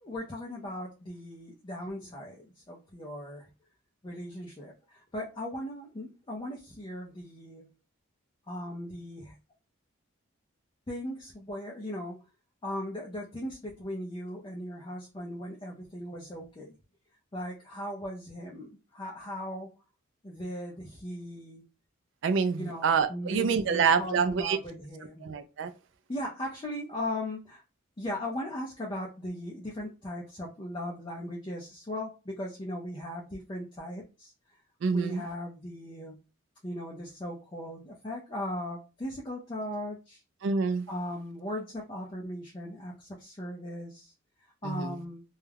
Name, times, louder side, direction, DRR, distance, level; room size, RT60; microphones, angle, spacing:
voice 1, 0.0-3.5 4.0-7.7 8.5-9.4 10.9-12.2 12.6-16.7 17.3-19.7 20.2-21.6 22.6-25.3 26.1-27.6 28.0-34.3 34.9-36.2 36.6-40.2 40.9-44.1 44.4-45.2, left 1 dB, 20° left, 0.4 m, -38 dB
voice 2, 22.2-24.6 25.2-25.7 34.8-35.2 40.4-40.9 44.6-45.0, right 5 dB, 60° right, 0.3 m, -27 dB
2.3 x 2.1 x 3.2 m
head